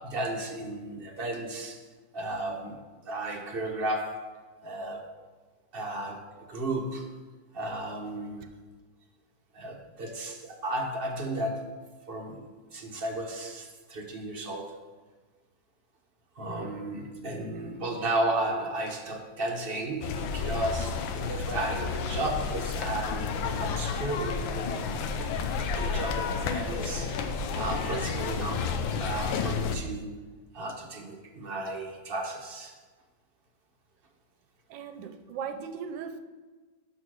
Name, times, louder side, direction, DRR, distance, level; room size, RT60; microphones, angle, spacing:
voice 1, 0.0-1.8 2.1-4.3 4.6-5.1 5.7-7.2 7.5-8.6 9.5-14.8 16.4-24.8 25.7-27.2 27.5-30.3 30.5-32.8, right 1 dB, 40° right, 2 dB, 0.9 m, -34 dB
sound 1, 20.0-29.8, left 5 dB, 80° left, 1.4 m, -31 dB
voice 2, 34.7-36.2, right 6 dB, 75° right, 8 dB, 1.3 m, -38 dB
6.5 x 6.2 x 6.2 m, 1.3 s
omnidirectional pair, 2.1 m